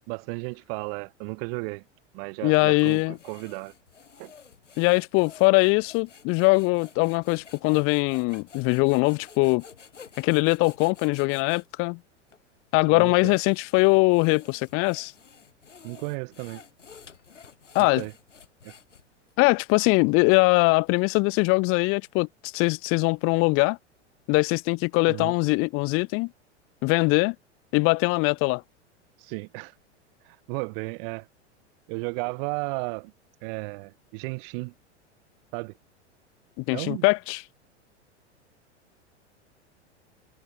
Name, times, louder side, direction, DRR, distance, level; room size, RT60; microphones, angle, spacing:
voice 1, 0.1-1.8 2.1-3.7 4.2-4.3 12.9-13.3 15.8-16.6 17.8-18.1 18.6-18.7 25.1-25.3 29.2-29.7 30.5-31.3 31.9-33.1 33.4-34.7 35.5-35.7 36.7-37.1, right 35 dB, 50° right, 2.2 m, -34 dB
voice 2, 2.4-3.2 4.8-9.6 10.2-12.0 12.7-15.1 17.7-18.0 19.4-23.8 24.3-26.3 26.8-27.3 27.7-28.6 36.6-37.4, left 28 dB, 40° left, 0.7 m, -22 dB
sound 1, 2.5-11.7 12.3-12.4 13.0-19.3, left 6 dB, 85° left, 7.9 m, -51 dB
hypercardioid pair, 95°, 36 cm